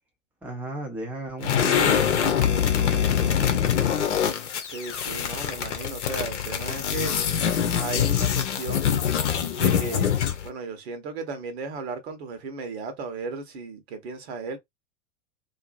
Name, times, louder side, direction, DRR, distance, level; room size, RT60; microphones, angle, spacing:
voice 1, 0.4-3.8, right 1 dB, 5° right, 0.6 m, -35 dB
sound 1, 1.4-10.5, left 8 dB, 60° left, 0.8 m, -24 dB
voice 2, 4.7-7.2 7.8-9.0 9.6-10.2 10.4-14.6, right 4 dB, 55° right, 1.1 m, -35 dB
2.6 x 2.6 x 2.4 m
figure-of-eight pair, 90°, 38 cm